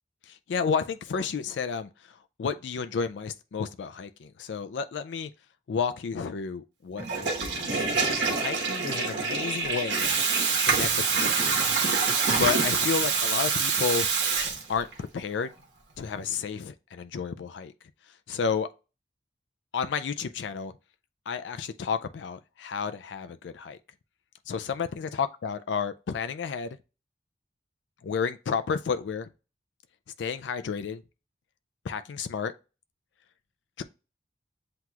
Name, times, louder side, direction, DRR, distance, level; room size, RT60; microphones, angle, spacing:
voice 1, 0.3-5.3 5.7-10.1 10.5-11.6 12.4-14.1 14.7-15.5 16.0-17.7 18.3-18.7 19.7-20.7 21.3-23.8 24.5-26.8 28.0-29.3 30.2-31.0 31.8-32.5 33.8-33.9, left 6 dB, 90° left, 0.4 m, -31 dB
Water tap faucet / Toilet flush, 7.0-15.0, right 5 dB, 80° right, 1.1 m, -26 dB
7.7 x 2.9 x 2.3 m
head